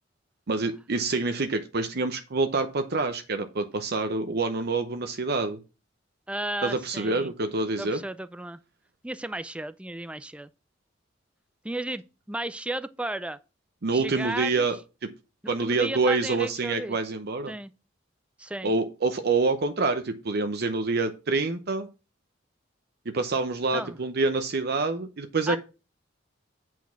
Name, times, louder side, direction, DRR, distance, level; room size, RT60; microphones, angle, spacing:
voice 1, 0.5-5.6 6.6-8.0 13.8-14.8 15.0-15.1 15.5-17.5 18.6-21.9 23.1-25.6, right 3 dB, 55° right, 0.7 m, -27 dB
voice 2, 6.3-7.3 7.8-8.6 9.0-10.5 11.6-12.0 12.3-13.4 13.9-14.7 15.4-17.0 17.5-17.7 18.4-18.7 23.7-24.0 25.5-25.6, right 1 dB, 5° right, 0.4 m, -34 dB
8.3 x 4.5 x 5.8 m
head